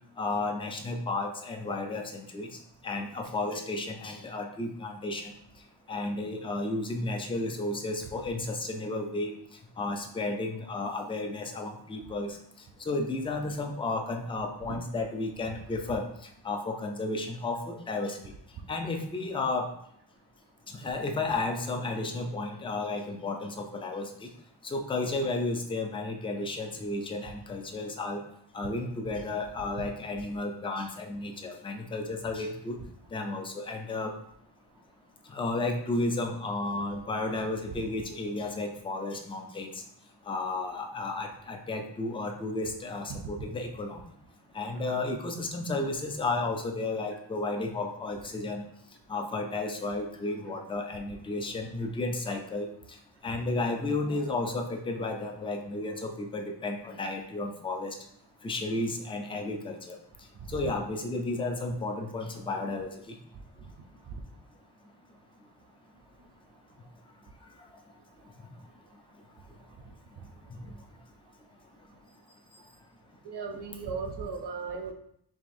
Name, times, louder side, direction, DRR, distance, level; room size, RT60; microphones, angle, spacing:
voice 1, 0.2-2.5 2.8-5.3 5.9-9.3 9.8-12.4 12.9-16.0 16.4-18.2 18.7-19.7 20.7-24.3 24.6-28.2 28.5-32.8 33.1-34.1 35.3-39.7 40.3-44.0 44.5-48.6 49.1-52.7 53.2-57.9 58.4-60.0 60.5-62.9 70.7-70.8, left 2 dB, 15° left, 3 dB, 0.3 m, -33 dB
voice 2, 73.2-74.9, right 5 dB, 60° right, 4 dB, 0.7 m, -36 dB
4.7 x 3.2 x 2.6 m, 0.69 s
wide cardioid pair, 175°, 44 cm